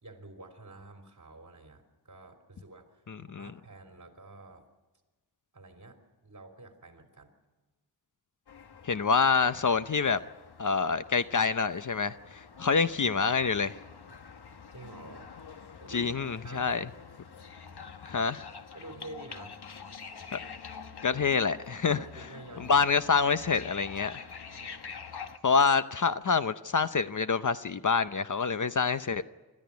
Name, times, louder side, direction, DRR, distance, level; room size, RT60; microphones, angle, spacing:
voice 1, 0.0-4.7 5.5-7.3 14.7-15.3 15.8-16.1 16.4-16.7 18.7-19.6 21.9-22.9 24.5-24.8, right 2 dB, 45° right, 4 dB, 3.5 m, -49 dB
voice 2, 3.1-3.5 8.8-10.2 10.6-13.8 15.9-16.9 18.0-18.5 20.3-20.4 21.0-22.0 22.7-24.2 25.4-29.2, left 5 dB, 50° left, 12 dB, 0.7 m, -27 dB
sound 1, 8.5-25.4, left 6 dB, 70° left, 1.2 m, -47 dB
26.5 x 13.5 x 9.5 m, 1.2 s
wide cardioid pair, 85°, 40 cm